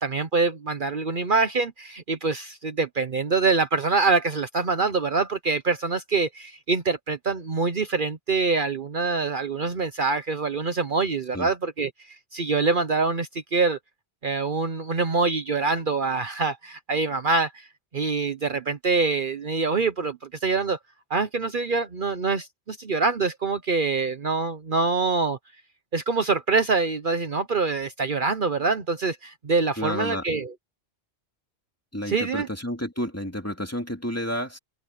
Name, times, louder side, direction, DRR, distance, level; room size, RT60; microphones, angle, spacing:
voice 1, 0.0-13.8 14.2-17.7 17.9-20.8 21.1-25.4 25.9-30.5 32.1-32.5, right 4 dB, 50° right, 1.1 m, -25 dB
voice 2, 29.8-30.2 31.9-34.6, equal, 15° left, 2.9 m, -30 dB
open air
omnidirectional pair, 1.1 m